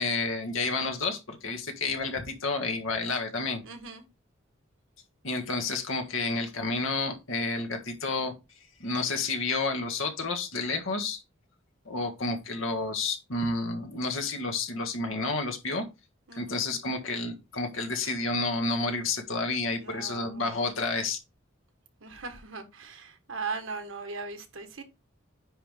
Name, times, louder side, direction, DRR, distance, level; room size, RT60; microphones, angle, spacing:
voice 1, 0.0-3.6 5.2-8.3 8.8-11.2 11.8-15.9 16.3-21.2, left 3 dB, 80° left, 1.5 m, -30 dB
voice 2, 3.6-4.0 16.3-16.6 19.8-20.5 22.0-24.8, right 4 dB, 80° right, 1.4 m, -39 dB
9.7 x 3.3 x 3.5 m
head